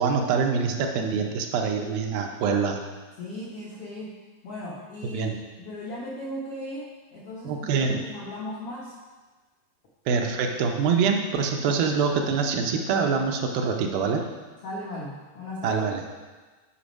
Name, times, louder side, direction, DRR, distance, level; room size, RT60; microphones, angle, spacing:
voice 1, 0.0-2.8 5.0-5.4 7.4-8.1 10.1-14.2 15.6-16.0, right 5 dB, 80° right, 3 dB, 2.3 m, -25 dB
voice 2, 3.2-4.1 4.4-9.0 14.6-15.8, left 1 dB, 80° left, -5 dB, 1.3 m, -37 dB
8.6 x 5.2 x 5.1 m, 1.3 s
omnidirectional pair, 4.4 m